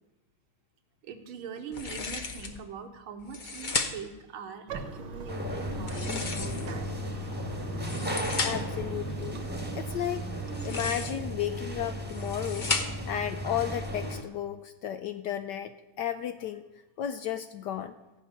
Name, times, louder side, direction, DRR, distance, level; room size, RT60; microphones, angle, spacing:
voice 1, 1.0-7.1, right 6 dB, 75° right, 6 dB, 2.0 m, -42 dB
sound 1, 1.7-2.6 3.2-4.2 5.8-6.9 7.7-8.8 10.5-11.3 11.9-13.2, left 4 dB, 50° left, 0.5 m, -34 dB
Bathtub (filling or washing), 4.7-10.9, right 3 dB, 60° right, 1.6 m, -42 dB
sound 2, 5.3-14.2, equal, 5° right, 1.1 m, -35 dB
voice 2, 8.4-9.5 9.7-10.3 10.6-12.7 13.1-15.7 16.0-16.6 17.0-17.9, left 10 dB, 70° left, 10 dB, 1.0 m, -33 dB
15.0 x 5.8 x 9.5 m, 1.1 s
omnidirectional pair, 2.3 m